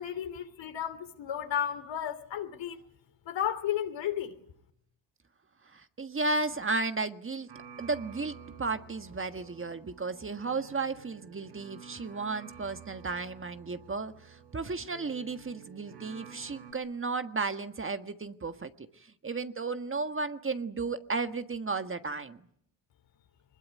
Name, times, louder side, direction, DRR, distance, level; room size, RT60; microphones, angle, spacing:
voice 1, 0.0-2.8 3.3-4.3, left 10 dB, 65° left, 3.1 m, -33 dB
voice 2, 5.7-7.5 7.8-22.4, right 3 dB, 25° right, 1.5 m, -34 dB
sound 1, 7.5-16.7, right 7 dB, 55° right, 7.8 m, -51 dB
23.0 x 21.0 x 9.5 m
supercardioid pair, 75°, 47 cm